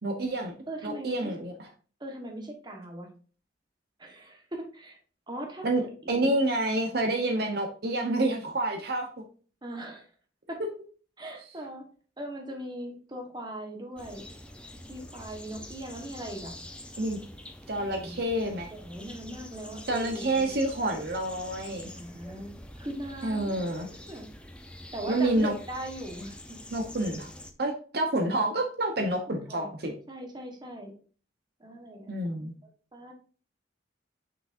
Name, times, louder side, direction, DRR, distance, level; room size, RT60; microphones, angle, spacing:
voice 1, 0.0-0.5 0.8-1.7 5.6-5.8 6.1-9.1 17.0-17.2 17.7-18.7 19.9-21.9 23.2-23.9 25.1-25.5 26.7-27.3 27.6-29.9 32.1-32.5, right 1 dB, 60° right, 3 dB, 0.9 m, -28 dB
voice 2, 0.7-1.4 2.0-3.1 4.0-5.0 5.3-5.7 6.0-6.4 9.6-10.1 10.5-10.6 11.2-11.8 12.2-14.3 14.9-16.5 17.8-18.3 18.7-21.0 21.9-22.5 22.8-24.2 24.9-26.3 29.3-29.7 30.1-30.9 31.6-32.1 32.9-33.1, right 1 dB, 25° right, 2 dB, 1.3 m, -40 dB
sound 1, 14.0-27.5, left 1 dB, 5° left, 0.6 m, -46 dB
6.1 x 5.9 x 2.6 m, 0.40 s
head